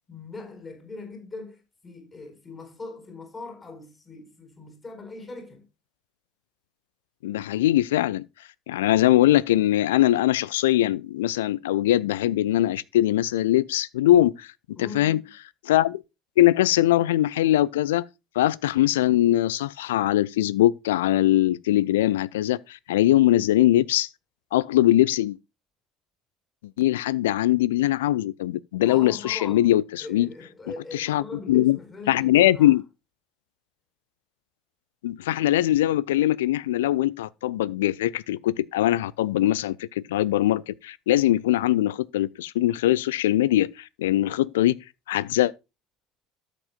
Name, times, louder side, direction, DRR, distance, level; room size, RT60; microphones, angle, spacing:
voice 1, 0.1-5.7 14.7-15.3 28.8-29.7 30.0-32.8, left 3 dB, 25° left, 5.3 m, -41 dB
voice 2, 7.2-8.2 8.7-14.5 14.8-15.2 15.7-16.0 16.4-18.0 18.4-24.1 24.5-25.4 26.8-30.3 30.9-31.8 32.1-32.8 35.0-43.7 44.0-44.8 45.1-45.5, left 14 dB, 70° left, 0.4 m, -21 dB
13.0 x 8.2 x 2.3 m
figure-of-eight pair, 60°, 0 cm